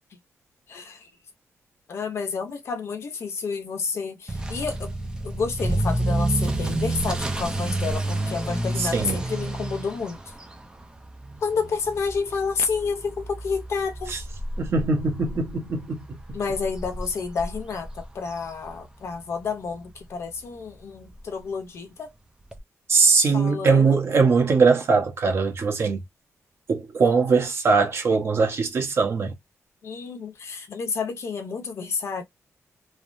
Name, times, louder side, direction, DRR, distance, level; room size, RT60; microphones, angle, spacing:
voice 1, 0.7-1.1 1.9-4.9 5.2-10.3 11.4-14.1 16.3-22.1 23.3-24.0 29.8-32.2, left 5 dB, 55° left, 0.8 m, -30 dB
Motor vehicle (road) / Accelerating revving vroom, 4.3-19.1 19.4-19.8 20.3-20.4 20.7-20.8 21.1-21.2 22.5-22.6, right 1 dB, 15° right, 0.5 m, -30 dB
voice 2, 14.6-16.2 22.9-26.0 26.7-29.3, right 4 dB, 50° right, 0.9 m, -21 dB
3.3 x 2.0 x 2.5 m
wide cardioid pair, 175°, 5 cm